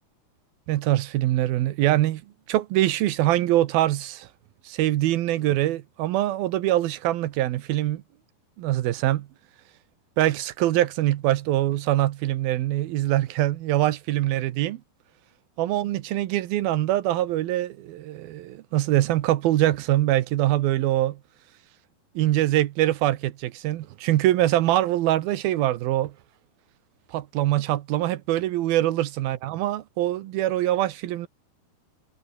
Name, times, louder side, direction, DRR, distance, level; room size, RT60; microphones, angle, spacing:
voice 1, 0.7-2.2 2.5-4.3 4.7-8.0 8.6-9.3 10.2-14.8 15.6-21.2 22.2-26.1 27.1-31.3, right 14 dB, 75° right, 2.8 m, -23 dB
omnidirectional pair, 4.5 m